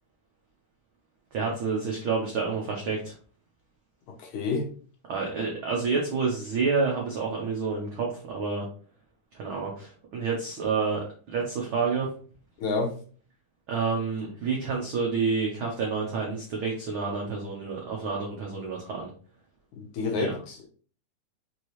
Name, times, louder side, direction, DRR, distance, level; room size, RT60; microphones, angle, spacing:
voice 1, 1.3-3.1 5.1-8.7 9.3-12.1 13.7-19.1 20.2-20.3, right 4 dB, 80° right, -1 dB, 1.1 m, -29 dB
voice 2, 4.2-4.7 12.6-12.9 19.8-20.6, left 4 dB, 70° left, 1 dB, 2.4 m, -29 dB
5.9 x 2.8 x 3.1 m, 0.41 s
omnidirectional pair, 3.5 m